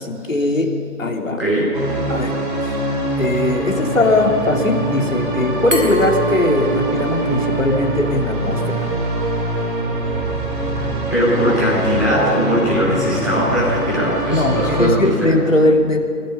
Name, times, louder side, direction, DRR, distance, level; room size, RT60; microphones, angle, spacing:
voice 1, 0.0-1.4 2.1-2.8 3.2-8.9 14.3-16.0, left 2 dB, 55° left, 2 dB, 3.1 m, -19 dB
sound 1, 1.7-14.9, right 1 dB, 30° right, 3.3 m, -23 dB
Glass, 5.7-8.5, right 1 dB, 55° right, 4.8 m, -27 dB
voice 2, 11.1-15.4, equal, ahead, -14 dB, 5.7 m, -19 dB
28.5 x 21.0 x 5.8 m, 2.4 s
figure-of-eight pair, 160°, 48 cm